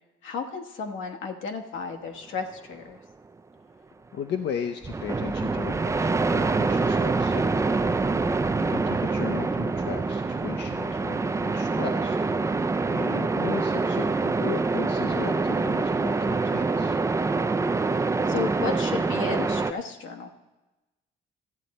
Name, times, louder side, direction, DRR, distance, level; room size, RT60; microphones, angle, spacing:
voice 1, 0.2-3.0 7.9-8.2 17.3-20.3, left 5 dB, 80° left, 4 dB, 1.1 m, -34 dB
voice 2, 4.1-7.5 8.6-12.1 12.9-17.0, left 8 dB, 60° left, 6 dB, 0.6 m, -36 dB
sound 1, 4.8-19.7, right 3 dB, 15° right, 0.3 m, -25 dB
13.5 x 7.6 x 4.1 m, 1.1 s
cardioid pair, 90°, 20 cm